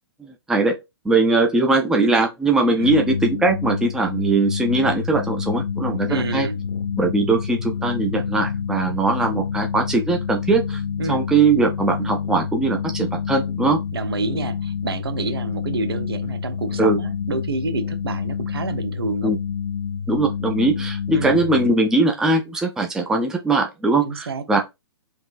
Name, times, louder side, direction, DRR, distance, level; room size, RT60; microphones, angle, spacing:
voice 1, 0.2-0.8 1.0-6.5 7.0-10.8 11.1-13.8 16.8-17.0 19.2-19.4 20.1-24.6, right 3 dB, 5° right, 0.4 m, -20 dB
sound 1, 2.8-21.7, left 6 dB, 70° left, 0.4 m, -28 dB
voice 2, 6.1-6.6 11.0-11.2 13.9-19.3 21.1-21.4 24.0-24.6, right 4 dB, 65° right, 0.7 m, -28 dB
3.5 x 2.8 x 2.5 m
figure-of-eight pair, 115°, 14 cm